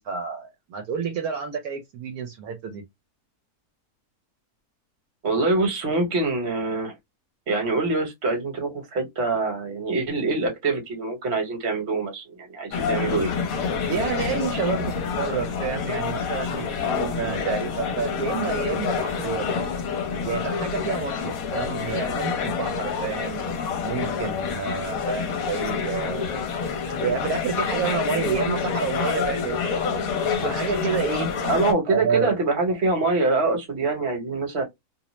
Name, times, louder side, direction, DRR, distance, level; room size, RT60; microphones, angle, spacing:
voice 1, 0.0-2.8 13.9-19.7 20.2-23.4 23.8-26.5 27.0-29.9 30.3-31.3 31.9-32.4, right 6 dB, 75° right, 1.0 m, -29 dB
voice 2, 5.2-6.9 7.5-13.3 31.5-34.6, right 3 dB, 45° right, 1.2 m, -24 dB
sound 1, 12.7-31.7, left 6 dB, 70° left, 1.1 m, -27 dB
2.7 x 2.0 x 2.9 m
omnidirectional pair, 1.7 m